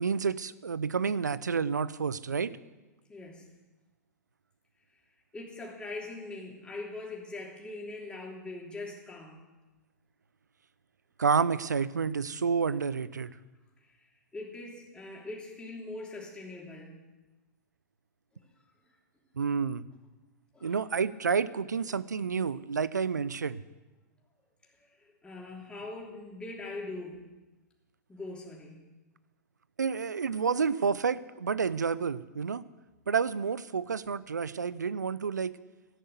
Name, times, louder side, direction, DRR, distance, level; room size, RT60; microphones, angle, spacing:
voice 1, 0.0-2.5 11.2-13.3 19.4-19.8 20.6-23.6 29.8-32.6 33.1-35.5, right 6 dB, 75° right, 17 dB, 0.6 m, -29 dB
voice 2, 3.1-3.4 5.3-9.4 13.8-14.0 14.3-17.0 20.5-20.8 21.7-21.8 24.8-27.2 28.1-28.8, left 2 dB, 10° left, -2 dB, 3.1 m, -42 dB
13.5 x 10.0 x 8.1 m, 1.1 s
figure-of-eight pair, 105°, 9 cm